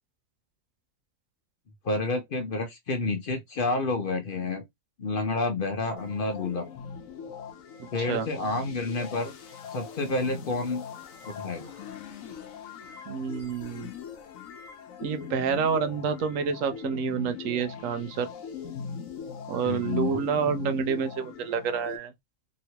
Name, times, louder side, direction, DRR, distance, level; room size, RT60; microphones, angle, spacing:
voice 1, 1.8-4.6 5.0-6.6 7.9-9.3 9.7-10.8 11.2-11.7 19.6-20.3, left 3 dB, 50° left, 0.8 m, -29 dB
sound 1, 6.0-22.0, left 6 dB, 85° left, 1.1 m, -40 dB
voice 2, 7.8-8.3 13.1-13.9 15.0-18.3 19.5-22.1, right 6 dB, 80° right, 1.0 m, -28 dB
3.0 x 2.9 x 2.8 m
omnidirectional pair, 1.4 m